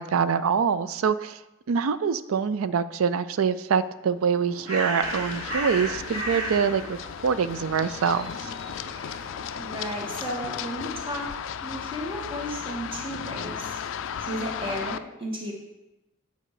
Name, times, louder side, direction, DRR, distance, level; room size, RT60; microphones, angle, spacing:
voice 1, 0.0-1.4 1.7-8.5, right 6 dB, 75° right, 15 dB, 0.4 m, -25 dB
Bird, 4.1-10.2, right 1 dB, 55° right, 3.0 m, -35 dB
Run, 5.0-15.0, left 8 dB, 60° left, 0.3 m, -35 dB
voice 2, 9.6-11.3 11.6-13.8 14.2-15.5, equal, 25° right, -1 dB, 1.5 m, -34 dB
8.8 x 5.2 x 4.9 m, 0.96 s
head